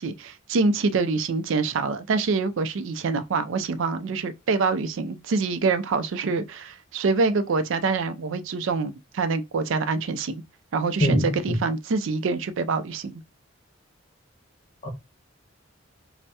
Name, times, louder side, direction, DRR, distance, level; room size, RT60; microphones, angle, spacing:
voice 1, 0.0-10.4 10.7-13.2, right 4 dB, 70° right, 0.4 m, -25 dB
voice 2, 11.0-11.6 14.8-14.9, left 1 dB, 35° left, 0.8 m, -23 dB
2.7 x 2.0 x 3.3 m
head